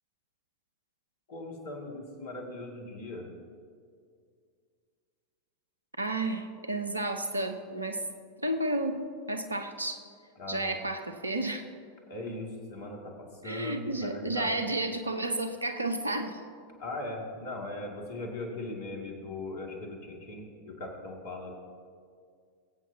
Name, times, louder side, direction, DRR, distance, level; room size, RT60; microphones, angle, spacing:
voice 1, 1.3-3.3 10.4-10.8 12.1-14.7 16.8-21.5, left 2 dB, 50° left, 1 dB, 2.3 m, -39 dB
voice 2, 6.0-8.0 8.4-9.0 9.3-10.0 10.5-11.6 13.4-16.4, right 2 dB, 80° right, 8 dB, 0.8 m, -31 dB
22.0 x 8.4 x 2.8 m, 2.2 s
figure-of-eight pair, 90°, 0 cm